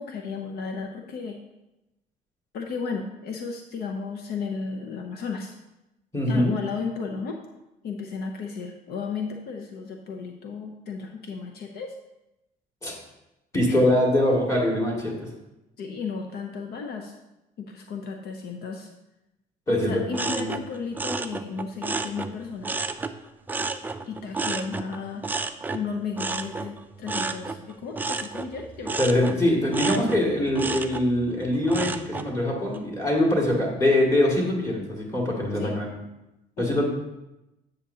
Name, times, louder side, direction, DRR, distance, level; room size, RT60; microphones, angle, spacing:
voice 1, 0.0-1.4 2.5-5.5 6.3-7.4 7.8-11.9 13.7-13.8 15.8-17.1 17.6-18.9 19.7-22.8 24.1-29.0 35.5-35.9 36.6-36.8, left 5 dB, 70° left, 3 dB, 0.7 m, -34 dB
voice 2, 6.1-6.5 12.8-12.9 13.5-15.2 19.7-20.0 20.3-20.6 29.0-35.9 36.6-36.8, left 1 dB, 20° left, -2 dB, 2.1 m, -23 dB
sound 1, 20.1-23.2 23.5-32.3 32.7-33.2, right 3 dB, 10° right, 0.3 m, -32 dB
8.6 x 6.6 x 2.8 m, 0.94 s
cardioid pair, 110°, 17 cm